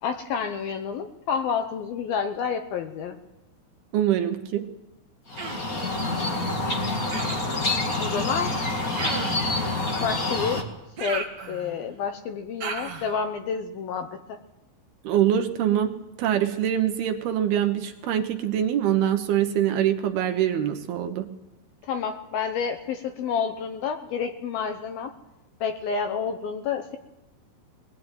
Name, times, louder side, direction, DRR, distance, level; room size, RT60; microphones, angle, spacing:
voice 1, 0.0-3.2 5.8-5.9 8.0-8.5 10.0-10.6 11.0-14.4 21.8-25.1 25.6-27.0, left 6 dB, 75° left, 7 dB, 2.3 m, -29 dB
voice 2, 3.9-4.7 15.0-21.3, right 10 dB, 70° right, 6 dB, 2.7 m, -24 dB
sound 1, 5.3-10.6, left 2 dB, 45° left, 1.1 m, -27 dB
Human voice, 5.4-5.7 7.1-7.6 8.9-9.5 11.0-11.9 12.6-13.1, right 5 dB, 40° right, 2.4 m, -34 dB
21.5 x 19.0 x 9.1 m, 0.97 s
omnidirectional pair, 5.5 m